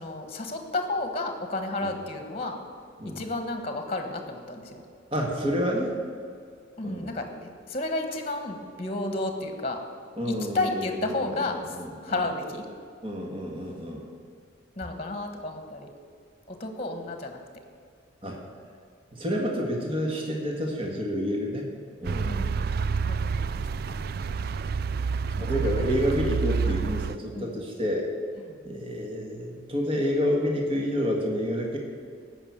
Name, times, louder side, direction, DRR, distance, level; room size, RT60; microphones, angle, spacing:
voice 1, 0.0-2.6 3.1-4.8 6.8-9.8 10.2-11.8 12.0-12.6 14.8-15.9 16.5-17.4 22.2-23.6 23.9-24.1 25.4-26.0 26.6-26.8 27.3-27.5 28.5-28.6, left 2 dB, 30° left, 5 dB, 1.3 m, -32 dB
voice 2, 5.1-6.0 6.8-7.1 10.2-12.2 13.0-14.0 18.2-18.4 19.1-21.7 22.0-22.5 25.4-28.1 28.7-31.8, equal, 30° right, 0 dB, 1.8 m, -29 dB
sound 1, 22.0-27.2, right 5 dB, 50° right, 0.3 m, -28 dB
14.5 x 6.0 x 8.7 m, 2.2 s
head